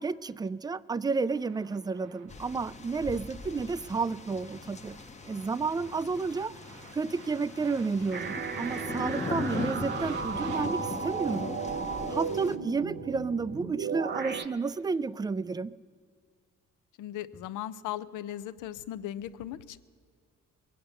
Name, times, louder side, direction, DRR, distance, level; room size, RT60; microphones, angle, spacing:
voice 1, 0.0-5.0 5.3-6.5 6.9-11.5 12.1-15.7, right 4 dB, 15° right, 18 dB, 0.3 m, -31 dB
sound 1, 1.3-10.7, right 8 dB, 80° right, 1.0 m, -53 dB
sound 2, 2.3-12.6, left 4 dB, 25° left, 0.7 m, -40 dB
Crystal Landing, 8.1-14.5, right 6 dB, 35° right, 0.9 m, -35 dB
voice 2, 17.0-19.8, left 12 dB, 85° left, 15 dB, 0.6 m, -38 dB
21.5 x 8.6 x 6.8 m, 2.1 s
cardioid pair, 90°, 30 cm